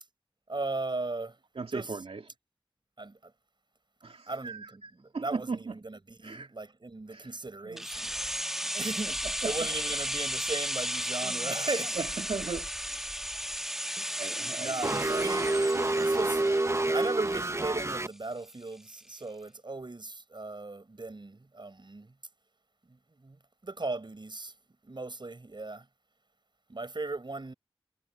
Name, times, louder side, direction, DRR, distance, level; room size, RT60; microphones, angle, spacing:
voice 1, 0.5-1.4 1.7-2.0 3.0-3.3 4.3-8.1 8.6-12.0 14.0-14.3 14.6-16.5 16.9-22.1 22.9-24.5 24.8-25.9 26.7-27.5, right 3 dB, 50° right, 5.7 m, -37 dB
voice 2, 1.5-2.2 4.0-5.8 6.2-6.5 7.1-7.4 7.6-8.4 9.4-9.5 11.2-11.5 11.9-13.1 14.1-15.3 15.7-15.8, right 4 dB, 85° right, 2.8 m, -38 dB
sound 1, 7.8-17.6 17.9-18.0, equal, 5° right, 1.5 m, -34 dB
sound 2, 14.8-18.1, right 2 dB, 30° right, 1.0 m, -28 dB
wide cardioid pair, 50°, 10 cm